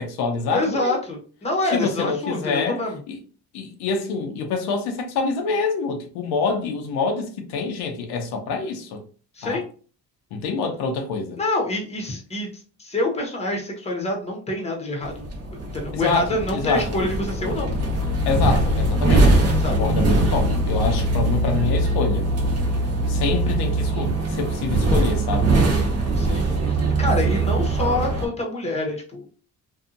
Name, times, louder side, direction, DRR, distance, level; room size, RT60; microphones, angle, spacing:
voice 1, 0.0-1.0 1.7-2.8 3.1-3.2 3.5-9.0 9.4-9.6 10.3-11.4 15.9-17.0 18.3-22.2 23.1-25.5, left 4 dB, 90° left, 0.7 m, -26 dB
voice 2, 0.5-3.0 9.3-9.6 11.4-15.3 15.7-17.7 19.5-19.8 26.2-29.2, left 2 dB, 15° left, 0.9 m, -26 dB
sound 1, 15.0-28.3, right 2 dB, 40° right, 0.9 m, -21 dB
2.7 x 2.4 x 2.5 m
cardioid pair, 105°, 38 cm